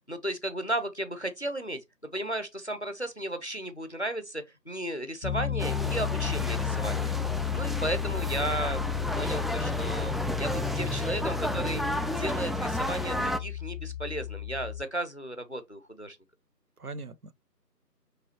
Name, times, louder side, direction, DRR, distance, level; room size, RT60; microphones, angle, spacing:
voice 1, 0.1-7.2 7.5-8.8 9.1-11.8 12.2-16.2, right 1 dB, 45° left, 0.6 m, -34 dB
Piano, 5.2-14.8, left 10 dB, 80° left, 0.7 m, -33 dB
sound 1, 5.6-13.4, equal, ahead, 0.3 m, -32 dB
voice 2, 11.5-11.9 16.8-17.3, right 4 dB, 65° right, 0.5 m, -40 dB
5.0 x 3.2 x 2.9 m
figure-of-eight pair, 170°, 50 cm